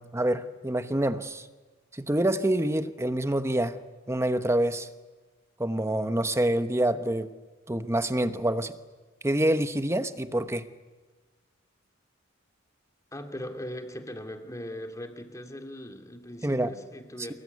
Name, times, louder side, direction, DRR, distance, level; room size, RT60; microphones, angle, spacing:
voice 1, 0.0-1.5 1.9-3.8 4.1-4.9 5.6-7.3 7.7-8.7 9.2-10.7 16.4-16.7 17.2-17.3, right 1 dB, 15° right, 10 dB, 1.1 m, -26 dB
voice 2, 13.1-17.3, left 1 dB, 15° left, 4 dB, 2.6 m, -39 dB
27.0 x 21.5 x 9.6 m, 1.3 s
head